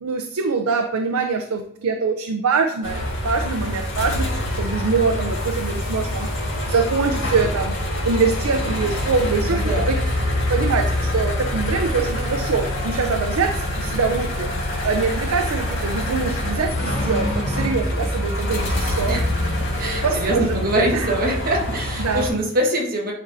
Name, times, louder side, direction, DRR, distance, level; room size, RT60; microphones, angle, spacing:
voice 1, 0.0-6.3 6.7-7.7 8.0-9.9 10.5-14.5 14.8-19.2 20.0-21.1 22.0-22.3, right 4 dB, 90° right, 5 dB, 0.5 m, -24 dB
sound 1, 2.8-22.3, left 1 dB, 65° left, 1.7 m, -25 dB
voice 2, 9.4-9.9 19.1-19.3 19.8-23.1, right 1 dB, 40° right, -1 dB, 1.3 m, -23 dB
9.3 x 4.0 x 2.6 m, 0.70 s
head